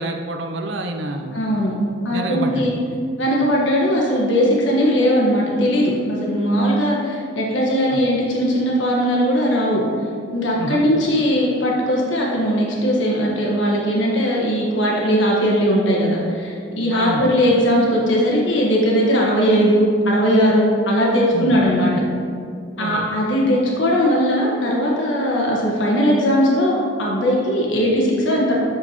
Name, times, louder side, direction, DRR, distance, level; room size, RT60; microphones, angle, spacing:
voice 1, 0.0-1.4 2.1-2.7 7.9-8.0 10.6-10.8 16.9-17.2 21.3-21.5 22.8-23.0, right 2 dB, 60° right, 4 dB, 0.5 m, -27 dB
voice 2, 1.3-1.7 2.0-2.7 3.2-9.8 10.3-21.9 22.8-28.6, equal, 65° left, -3 dB, 1.3 m, -19 dB
7.9 x 6.5 x 2.9 m, 2.3 s
head